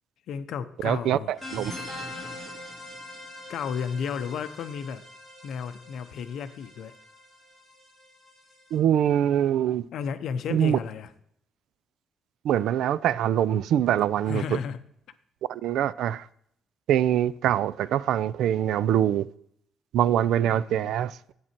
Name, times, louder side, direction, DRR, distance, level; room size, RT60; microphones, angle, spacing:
voice 1, 0.3-1.3 3.5-5.0 5.4-6.9 9.9-11.1 14.3-14.8 20.4-20.9, left 7 dB, 60° left, 0.7 m, -33 dB
voice 2, 0.8-1.2 1.5-1.7 8.7-9.9 10.5-10.8 12.4-14.6 15.5-16.3 16.9-19.3 19.9-21.2, right 10 dB, 70° right, 0.4 m, -24 dB
sound 1, 1.4-8.7, left 1 dB, 5° right, 4.3 m, -42 dB
11.0 x 8.8 x 4.4 m
cardioid pair, 175°, 0 cm